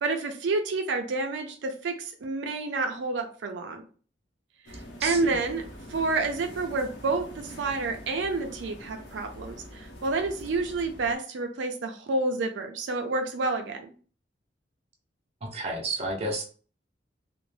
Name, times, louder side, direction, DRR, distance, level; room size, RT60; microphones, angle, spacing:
voice 1, 0.0-3.8 4.7-13.9, right 3 dB, 85° right, 5 dB, 0.4 m, -29 dB
sound 1, 4.7-11.2, equal, 70° left, 0.7 m, -44 dB
voice 2, 5.0-5.3 15.4-16.4, right 2 dB, 35° right, 1 dB, 0.6 m, -31 dB
2.5 x 2.0 x 3.1 m, 0.41 s
head